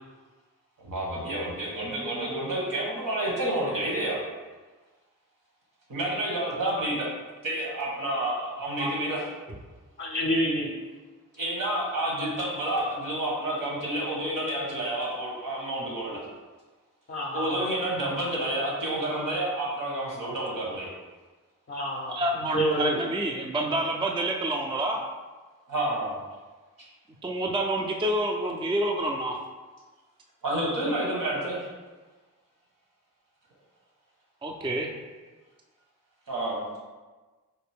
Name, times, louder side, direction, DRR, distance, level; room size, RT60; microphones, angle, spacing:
voice 1, 0.8-4.3 5.9-7.1 7.4-9.3 11.4-16.3 17.3-20.9 25.7-26.1 30.4-31.7 36.3-36.6, right 1 dB, 80° right, -4 dB, 1.3 m, -29 dB
voice 2, 10.0-10.7 17.1-17.7 21.7-22.2 22.5-23.0, equal, 35° left, -1 dB, 0.5 m, -28 dB
voice 3, 22.1-25.0 27.2-29.4 34.4-34.9, right 1 dB, 15° right, 0 dB, 0.3 m, -28 dB
4.1 x 2.5 x 3.4 m, 1.3 s
cardioid pair, 65°, 33 cm